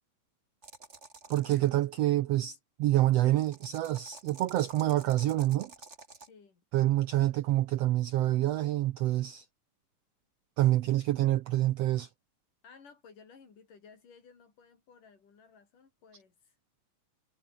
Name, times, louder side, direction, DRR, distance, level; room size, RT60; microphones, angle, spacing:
sound 1, 0.6-1.7 3.4-6.3, right 3 dB, 20° right, 2.5 m, -51 dB
voice 1, 1.3-5.7 6.7-9.4 10.6-12.1, right 15 dB, 90° right, 1.4 m, -27 dB
voice 2, 6.3-6.6 12.6-16.6, left 5 dB, 75° left, 6.1 m, -57 dB
omnidirectional pair, 3.8 m